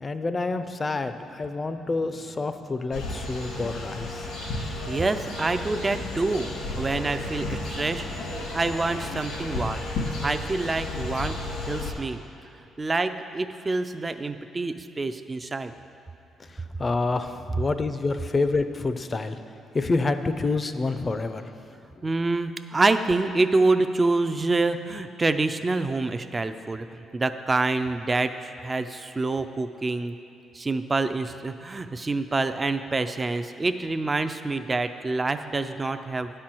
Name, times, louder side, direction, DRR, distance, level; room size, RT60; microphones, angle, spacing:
voice 1, 0.0-4.3 16.8-19.4 19.7-21.5, left 3 dB, 30° left, 10 dB, 0.5 m, -27 dB
sound 1, 2.9-11.9, left 2 dB, 85° left, 2.1 m, -33 dB
voice 2, 4.9-8.2 8.5-9.8 10.2-11.4 11.7-12.2 12.8-15.7 22.0-30.1 30.5-36.3, right 3 dB, 25° right, 9 dB, 0.4 m, -26 dB
9.6 x 4.4 x 7.6 m, 2.6 s
cardioid pair, 90°, 0 cm